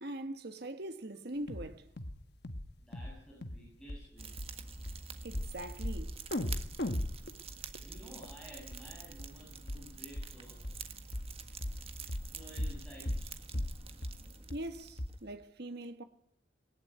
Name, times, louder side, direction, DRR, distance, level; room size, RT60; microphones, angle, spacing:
voice 1, 0.0-1.9 5.2-6.1 14.5-16.0, right 1 dB, 55° right, 1.4 m, -42 dB
sound 1, 1.5-1.7 2.0-2.2 2.4-2.7 2.9-3.2 3.4-3.6 3.9-4.0 4.4-4.5 4.9-5.0 5.3-5.5 5.8-6.0 6.3-8.3 8.7-8.8 9.2-9.3 9.7-9.8 10.2-10.3 10.6-10.8 11.1-11.3 11.6-11.8 12.1-12.3 12.6-12.8 13.1-13.3 13.5-13.8 14.0-14.2 14.5-14.6 15.0-15.1, left 1 dB, 55° left, 1.5 m, -37 dB
voice 2, 2.8-4.3 7.6-10.6 12.0-13.3, equal, 5° left, 7.9 m, -53 dB
Fire, 4.2-15.3, right 4 dB, 30° right, 1.6 m, -47 dB
19.5 x 19.0 x 9.4 m
head